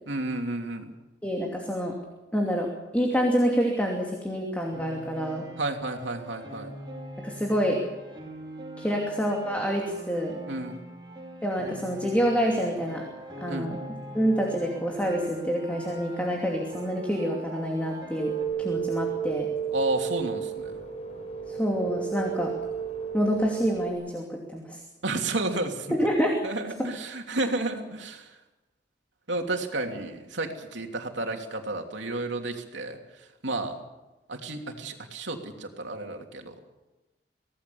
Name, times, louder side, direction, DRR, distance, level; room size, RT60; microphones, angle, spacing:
voice 1, 0.1-0.9 5.6-6.7 10.5-10.8 13.5-13.7 19.7-20.7 25.0-26.0 26.4-28.4 29.3-33.8 34.3-36.5, right 2 dB, 80° right, 3 dB, 3.0 m, -32 dB
voice 2, 1.2-1.9 2.3-2.7 2.9-5.4 7.2-7.8 8.8-10.4 11.4-13.0 13.4-13.8 14.1-18.3 18.6-19.5 21.5-22.5 23.1-24.8 25.9-26.4 26.8-26.9, equal, 10° left, 0 dB, 2.7 m, -27 dB
Piano, 4.7-18.4, right 1 dB, 25° right, 6.1 m, -42 dB
sound 1, 18.2-23.9, right 7 dB, 40° left, 5.0 m, -32 dB
25.0 x 17.5 x 7.1 m, 1.1 s
head